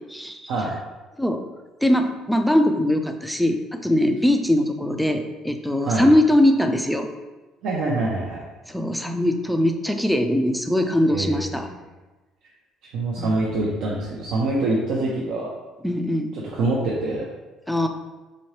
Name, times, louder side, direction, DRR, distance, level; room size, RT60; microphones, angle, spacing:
voice 1, 0.1-0.5 1.2-1.4 1.8-7.1 8.7-11.7 13.2-13.4 15.8-16.3 17.7-17.9, left 1 dB, ahead, 6 dB, 0.3 m, -21 dB
voice 2, 7.6-8.4 11.1-11.6 12.9-15.5 16.5-17.2, right 2 dB, 65° right, -4 dB, 0.7 m, -25 dB
4.2 x 3.9 x 3.2 m, 1.2 s
cardioid pair, 155°, 0 cm